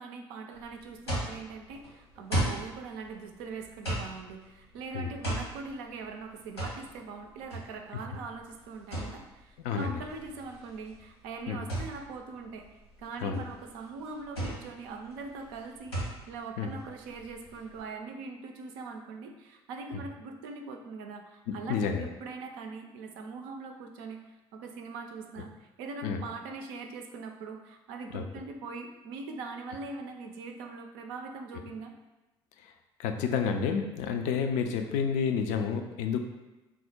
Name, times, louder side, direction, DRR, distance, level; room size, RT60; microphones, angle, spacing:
voice 1, 0.0-12.7 13.0-24.2 24.5-31.9, right 4 dB, 65° right, 4 dB, 0.4 m, -42 dB
sound 1, 0.5-17.8, right 1 dB, 90° left, 1.2 m, -37 dB
voice 2, 9.6-10.0 11.5-11.6 13.2-13.4 16.6-16.7 19.9-20.0 21.5-22.1 26.0-26.2 28.1-28.2 32.6-32.7 33.0-36.2, left 6 dB, 60° left, 5 dB, 0.4 m, -30 dB
3.5 x 2.0 x 4.3 m, 1.1 s
figure-of-eight pair, 50°, 13 cm